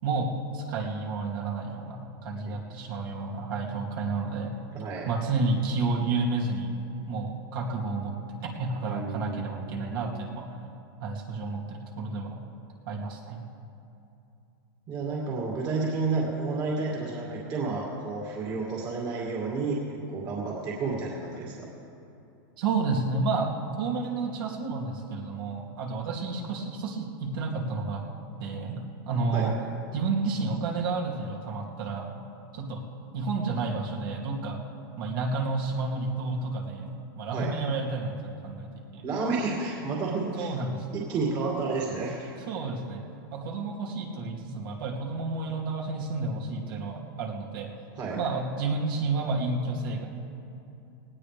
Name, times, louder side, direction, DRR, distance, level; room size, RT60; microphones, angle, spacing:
voice 1, 0.0-4.5 5.1-6.7 7.1-8.2 8.4-10.6 11.0-12.4 12.9-13.4 22.6-23.5 23.8-28.0 28.4-29.5 29.9-32.1 32.5-32.8 33.1-34.6 35.0-36.9 37.2-39.1 40.4-41.0 42.5-43.0 43.3-47.7 48.2-50.1, right 3 dB, 65° right, -1 dB, 2.7 m, -30 dB
voice 2, 4.7-5.1 8.9-10.2 14.9-19.8 20.1-21.7 29.3-29.5 37.3-37.5 39.0-40.5 40.9-42.3 47.9-48.2, right 4 dB, 35° right, -3 dB, 2.4 m, -31 dB
19.0 x 18.5 x 3.4 m, 2.7 s
supercardioid pair, 145°, 12 cm